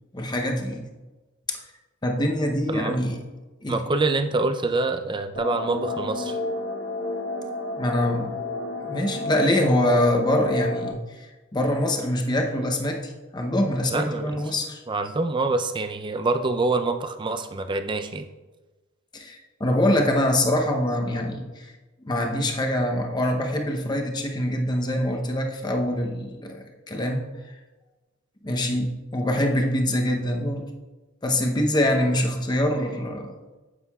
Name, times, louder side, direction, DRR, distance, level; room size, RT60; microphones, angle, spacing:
voice 1, 0.1-0.9 1.5-1.6 2.0-3.2 3.6-3.8 7.8-8.4 8.8-14.8 19.1-21.7 22.0-27.2 28.4-30.7 31.2-33.4, left 1 dB, 20° left, 3 dB, 0.7 m, -24 dB
voice 2, 3.7-6.4 13.9-14.4 14.9-18.3, right 3 dB, 25° right, 7 dB, 0.4 m, -26 dB
sound 1, 5.4-10.9, left 2 dB, 60° left, 1.0 m, -31 dB
9.6 x 7.8 x 2.3 m, 1.2 s
head